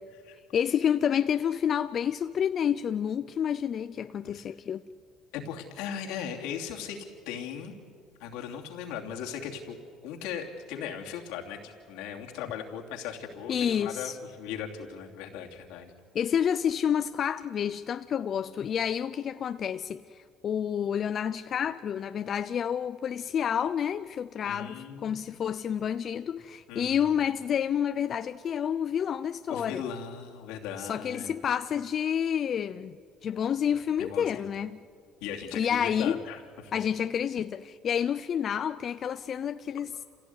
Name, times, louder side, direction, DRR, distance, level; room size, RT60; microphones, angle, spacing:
voice 1, 0.5-4.8 13.5-14.2 16.1-20.0 20.4-29.8 30.8-33.0 33.2-34.8 35.5-36.2 36.7-40.0, left 8 dB, 45° left, 0.6 m, -29 dB
voice 2, 5.3-7.7 8.2-9.8 10.0-15.9 24.4-25.2 26.7-27.0 29.5-31.3 34.0-34.5 35.2-36.7, left 8 dB, 85° left, 2.9 m, -38 dB
27.5 x 16.5 x 9.5 m
cardioid pair, 100°, 0 cm